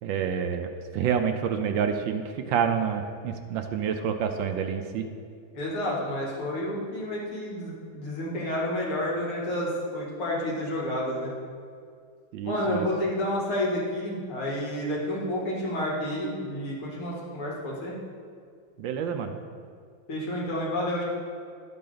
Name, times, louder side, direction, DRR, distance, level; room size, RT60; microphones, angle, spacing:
voice 1, 0.0-5.1 12.3-12.8 18.8-19.3, right 7 dB, 75° right, 6 dB, 1.2 m, -28 dB
voice 2, 5.5-11.3 12.4-18.0 20.1-21.0, left 1 dB, 85° left, -4 dB, 2.8 m, -30 dB
11.5 x 7.6 x 3.9 m, 2.2 s
omnidirectional pair, 2.3 m